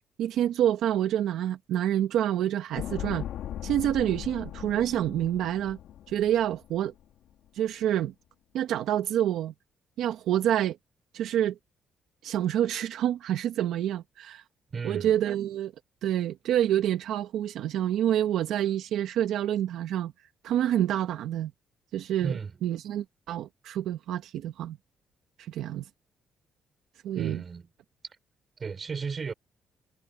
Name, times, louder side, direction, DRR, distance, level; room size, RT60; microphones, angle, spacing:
voice 1, 0.2-3.2 3.6-5.8 6.1-6.9 7.5-8.1 8.5-9.5 10.0-10.8 11.1-11.6 12.2-14.4 14.8-15.7 16.0-20.1 20.4-21.5 21.9-24.8 25.4-25.9 27.0-27.4, right 11 dB, 85° right, 1.4 m, -27 dB
sound 1, 2.7-7.0 7.3-7.4, left 11 dB, 80° left, 1.9 m, -39 dB
voice 2, 14.7-15.2 22.2-22.5 27.1-27.7 28.6-29.3, right 5 dB, 40° right, 5.7 m, -34 dB
cardioid pair, 90°, 0 cm